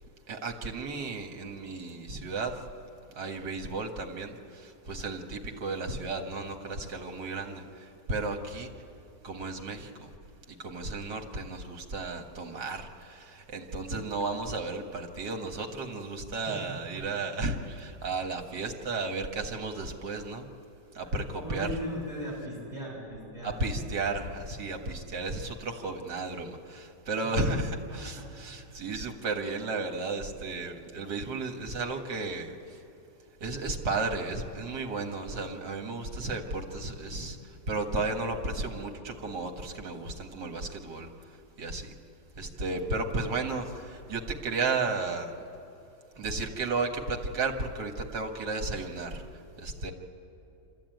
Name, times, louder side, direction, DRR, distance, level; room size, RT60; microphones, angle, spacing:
voice 1, 0.3-2.6 3.2-8.7 9.2-10.1 10.5-20.5 20.9-21.7 23.4-32.8 33.4-41.9 42.4-45.3 46.2-49.9, right 3 dB, 75° right, 4 dB, 2.3 m, -34 dB
voice 2, 16.5-17.0 21.0-23.6 27.2-27.5 27.9-29.0, equal, 25° right, -4 dB, 7.1 m, -39 dB
26.5 x 13.5 x 9.2 m, 2.8 s
omnidirectional pair, 1.9 m